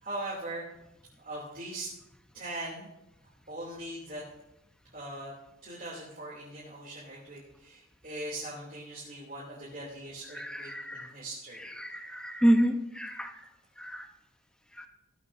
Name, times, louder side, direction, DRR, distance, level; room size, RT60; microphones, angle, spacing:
voice 1, 0.0-0.6 1.2-1.9 2.3-2.9 3.2-4.2 4.9-5.3 5.6-11.7, right 1 dB, 45° right, -6 dB, 3.1 m, -40 dB
voice 2, 10.4-11.1 11.8-13.3 13.8-14.0 14.8-14.9, equal, 5° left, 4 dB, 1.0 m, -28 dB
16.5 x 12.0 x 2.8 m, 0.89 s
head